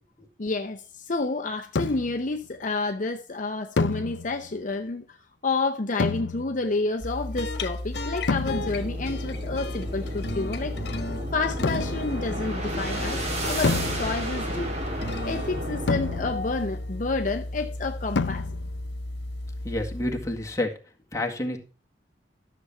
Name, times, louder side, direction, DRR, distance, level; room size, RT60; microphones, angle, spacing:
voice 1, 0.4-5.2 5.4-10.8 11.3-14.7 15.2-18.5, left 3 dB, 45° left, 0.8 m, -29 dB
sound 1, 1.8-2.3 3.8-4.6 6.0-6.8 8.3-9.0 11.6-12.2 13.6-14.5 15.9-16.7 18.2-18.9, left 4 dB, 85° left, 0.6 m, -29 dB
sound 2, 7.0-20.6, left 1 dB, 60° left, 1.4 m, -34 dB
sound 3, 8.5-16.3, right 1 dB, 35° right, 3.0 m, -33 dB
voice 2, 19.6-20.7 21.1-21.6, left 1 dB, 15° left, 1.8 m, -28 dB
13.0 x 7.0 x 4.4 m
head